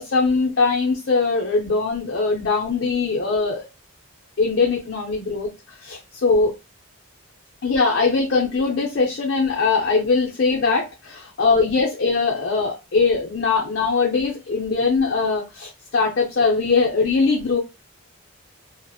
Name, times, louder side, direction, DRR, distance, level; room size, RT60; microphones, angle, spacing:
voice 1, 0.0-3.6 4.4-6.5 7.6-17.6, left 4 dB, 55° left, 0.5 m, -21 dB
2.8 x 2.0 x 2.3 m
head